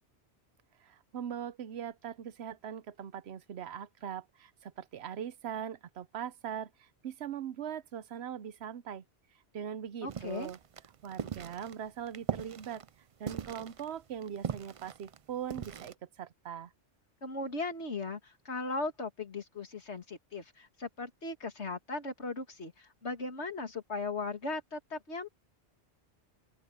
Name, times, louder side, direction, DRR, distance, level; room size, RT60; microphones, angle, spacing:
voice 1, 0.8-9.0 9.5-10.6 11.0-12.8 13.2-16.7, right 9 dB, 70° right, 0.9 m, -41 dB
voice 2, 10.0-10.5 17.2-25.3, left 3 dB, 75° left, 2.6 m, -38 dB
sound 1, 10.1-15.9, right 7 dB, 55° right, 0.4 m, -40 dB
open air
omnidirectional pair, 1.2 m